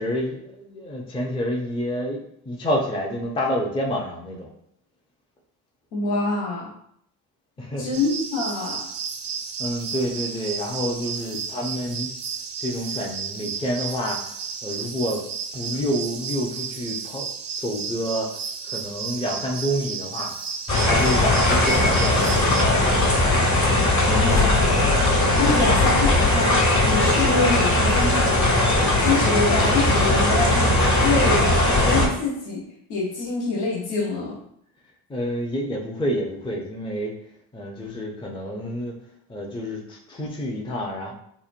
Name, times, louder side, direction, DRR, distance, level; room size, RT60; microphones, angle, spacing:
voice 1, 0.0-4.5 7.6-8.1 9.6-12.1 12.6-14.2 14.6-15.2 15.5-17.3 17.6-18.3 18.7-20.3 20.8-22.4 35.1-37.1 37.5-38.9 39.3-41.1, equal, 10° left, -1 dB, 0.5 m, -28 dB
voice 2, 5.9-6.7 7.8-8.8 24.0-25.0 25.3-28.4 29.0-32.6 32.9-34.4, left 3 dB, 90° left, -3 dB, 0.8 m, -26 dB
sound 1, 7.9-22.6, right 6 dB, 50° right, 0.5 m, -33 dB
sound 2, 20.7-32.1, left 1 dB, 40° left, 1.1 m, -19 dB
2.9 x 2.1 x 2.5 m, 0.72 s
hypercardioid pair, 50°, 45 cm